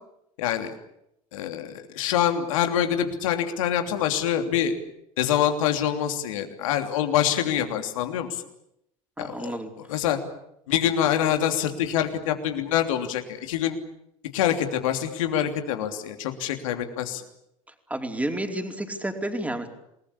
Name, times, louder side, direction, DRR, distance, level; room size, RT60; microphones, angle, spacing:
voice 1, 0.4-0.7 1.3-4.8 5.2-8.4 9.2-10.2 10.7-13.7 14.3-17.2, left 10 dB, 75° left, 6 dB, 3.2 m, -25 dB
voice 2, 9.2-9.7 17.9-19.7, right 1 dB, 10° right, 4 dB, 4.5 m, -30 dB
28.5 x 20.0 x 8.7 m, 0.79 s
hypercardioid pair, 70°, 17 cm